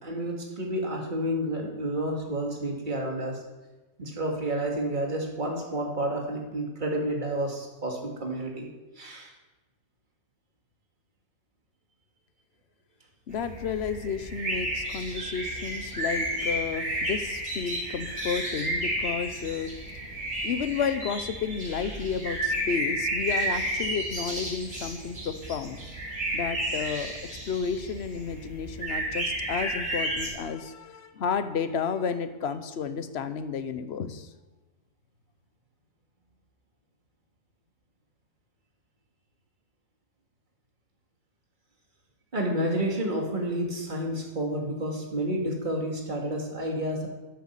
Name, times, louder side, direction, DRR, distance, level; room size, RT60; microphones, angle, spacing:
voice 1, 0.0-3.4 4.0-8.7 9.0-9.3 42.3-47.1, right 1 dB, 30° right, 0 dB, 2.3 m, -30 dB
voice 2, 13.3-19.7 20.4-25.8 26.3-27.1 27.5-34.3, left 6 dB, 50° left, 11 dB, 1.0 m, -32 dB
sound 1, 13.3-30.3, right 1 dB, 60° right, 4.7 m, -32 dB
12.5 x 8.0 x 7.3 m, 1.1 s
omnidirectional pair, 1.7 m